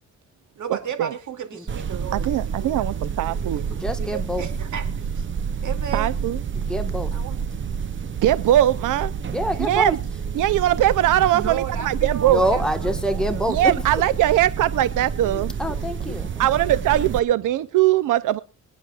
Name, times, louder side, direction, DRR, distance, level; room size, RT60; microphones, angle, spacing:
voice 1, 0.6-5.3 5.6-6.1 7.1-7.4 9.4-9.8 11.3-13.5 16.2-16.5, right 8 dB, 70° right, 2.6 m, -35 dB
sound 1, 1.7-17.2, right 6 dB, 40° right, 0.7 m, -29 dB
voice 2, 2.1-3.7 5.9-6.4 8.2-9.1 9.7-10.0 10.3-12.4 13.5-15.5 16.4-18.4, right 13 dB, 90° right, 0.6 m, -20 dB
voice 3, 3.7-4.4 6.5-7.1 9.3-9.9 12.2-13.7 15.6-16.5, equal, ahead, 1.5 m, -26 dB
sound 2, 10.8-17.6, left 4 dB, 30° left, 1.6 m, -45 dB
25.5 x 9.8 x 2.4 m
cardioid pair, 115°, 31 cm